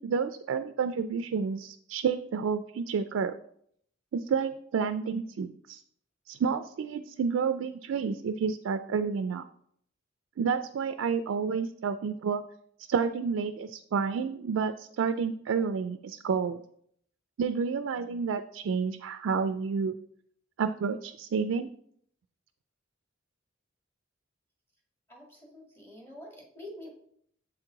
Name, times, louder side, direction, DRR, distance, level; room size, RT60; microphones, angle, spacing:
voice 1, 0.0-3.4 4.1-5.8 6.3-9.5 10.4-12.4 12.9-16.6 17.4-20.0 20.6-21.7, right 6 dB, 85° right, 9 dB, 0.3 m, -30 dB
voice 2, 25.1-26.9, left 1 dB, 10° left, -2 dB, 1.6 m, -46 dB
7.5 x 4.5 x 3.8 m, 0.67 s
head